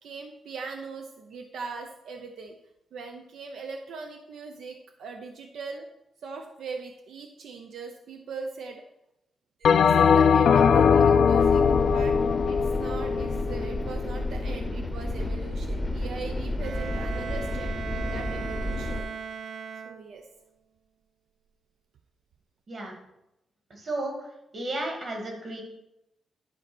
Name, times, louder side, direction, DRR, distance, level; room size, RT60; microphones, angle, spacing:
voice 1, 0.0-2.6 2.9-5.9 6.2-8.8 9.6-12.2 12.5-19.1 19.8-20.3, right 4 dB, 75° right, 4 dB, 0.8 m, -40 dB
Bell, 9.6-14.2, left 6 dB, 55° left, 0.4 m, -20 dB
sound 1, 11.4-19.0, left 1 dB, 10° left, 0.8 m, -31 dB
Bowed string instrument, 16.6-20.4, right 6 dB, 60° right, 0.4 m, -38 dB
voice 2, 23.7-25.6, right 2 dB, 35° right, 1 dB, 2.0 m, -33 dB
11.0 x 4.2 x 6.1 m, 0.87 s
wide cardioid pair, 180°, 0 cm